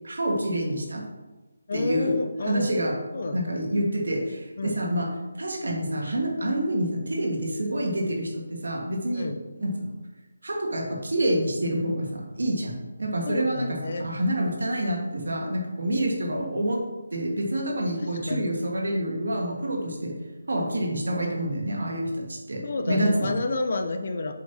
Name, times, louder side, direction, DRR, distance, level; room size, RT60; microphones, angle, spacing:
voice 1, 0.0-1.0 1.7-3.0 3.3-5.1 5.4-9.3 9.6-9.9 10.4-16.8 17.1-20.1 20.5-22.6 22.9-23.3, right 1 dB, 80° right, -1 dB, 1.6 m, -27 dB
voice 2, 1.7-3.4 4.6-4.8 9.2-9.4 13.3-14.1 18.0-18.5 22.6-24.3, left 3 dB, 55° left, 6 dB, 0.6 m, -30 dB
7.5 x 5.3 x 2.8 m, 1.2 s
figure-of-eight pair, 165°, 0 cm